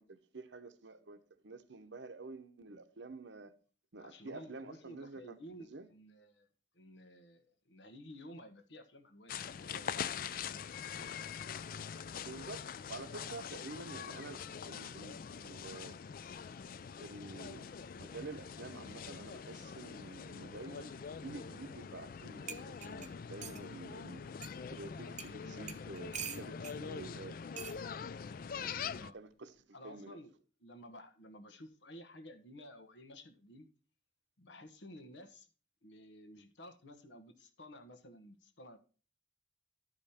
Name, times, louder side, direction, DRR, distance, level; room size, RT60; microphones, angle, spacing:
voice 1, 0.0-3.5 3.9-5.9 12.2-16.0 17.0-17.7 18.0-20.9 21.2-24.2 24.7-27.7 28.6-29.5 29.8-30.2, right 3 dB, 85° right, 0.9 m, -49 dB
voice 2, 4.0-6.5 6.7-11.1 28.9-29.2 29.7-30.3 30.6-33.7 34.4-35.5 35.8-38.8, equal, 90° left, 1.2 m, -53 dB
sound 1, 9.3-29.1, left 7 dB, 50° left, 0.4 m, -44 dB
sound 2, 22.1-22.2 22.5-23.6 24.4-24.5 25.2-25.3 25.7-26.8 27.6-27.8 28.9-29.2, right 7 dB, 45° right, 0.7 m, -45 dB
12.0 x 5.1 x 4.3 m
head